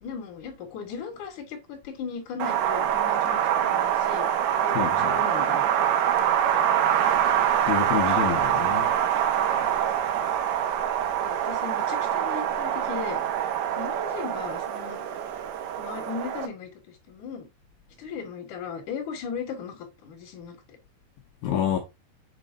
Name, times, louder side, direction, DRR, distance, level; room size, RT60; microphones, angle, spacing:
voice 1, 0.0-4.3 4.6-6.5 8.5-8.7 10.1-10.5 11.2-13.2 13.8-15.0 15.8-17.5 18.0-20.6, left 6 dB, 55° left, 2.4 m, -37 dB
Wind, 2.4-16.5, right 10 dB, 85° right, 3.2 m, -25 dB
voice 2, 4.7-5.1 7.7-8.9 21.4-21.8, left 9 dB, 75° left, 2.2 m, -27 dB
7.0 x 5.2 x 2.5 m
omnidirectional pair, 5.1 m